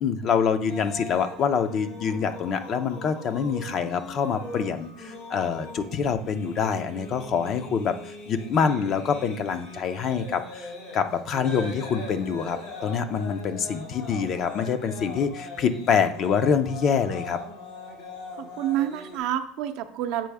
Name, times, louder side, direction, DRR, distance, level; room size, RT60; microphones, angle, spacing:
voice 1, 0.0-17.4, left 6 dB, 40° left, 10 dB, 0.5 m, -26 dB
sound 1, 0.7-19.2, left 2 dB, 75° left, 2.3 m, -40 dB
voice 2, 18.4-20.3, right 11 dB, 70° right, 7 dB, 0.6 m, -28 dB
7.5 x 4.7 x 3.4 m, 0.63 s
cardioid pair, 135°, 0 cm